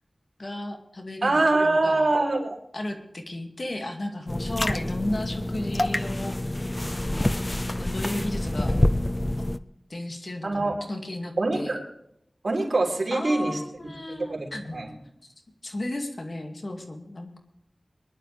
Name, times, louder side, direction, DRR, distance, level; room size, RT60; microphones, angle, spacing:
voice 1, 0.4-2.1 2.7-7.4 7.8-8.8 9.9-11.8 13.1-14.9 15.6-17.4, left 1 dB, 55° left, 3 dB, 2.3 m, -34 dB
voice 2, 1.2-2.6 10.4-10.8 11.4-11.8 12.4-13.6 14.3-14.9, right 2 dB, 70° right, 0 dB, 3.8 m, -24 dB
sound 1, 4.3-9.6, left 1 dB, 25° left, 0.5 m, -27 dB
22.5 x 11.5 x 3.4 m, 0.76 s
wide cardioid pair, 65°, 0 cm